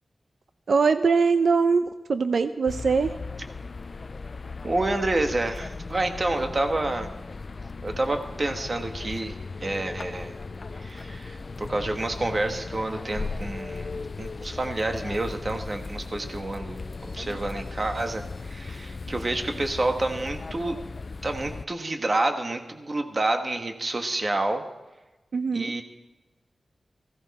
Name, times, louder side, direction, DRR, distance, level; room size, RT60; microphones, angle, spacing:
voice 1, 0.7-3.1 25.3-25.7, right 5 dB, 75° right, 9 dB, 0.6 m, -22 dB
sound 1, 2.7-21.6, left 3 dB, 45° left, 0.4 m, -37 dB
voice 2, 4.6-7.1 7.8-10.3 10.7-16.8 17.1-20.8 21.2-24.6 25.5-25.8, right 2 dB, 35° right, 5 dB, 1.3 m, -28 dB
16.5 x 15.5 x 4.2 m, 1.1 s
wide cardioid pair, 120°, 0 cm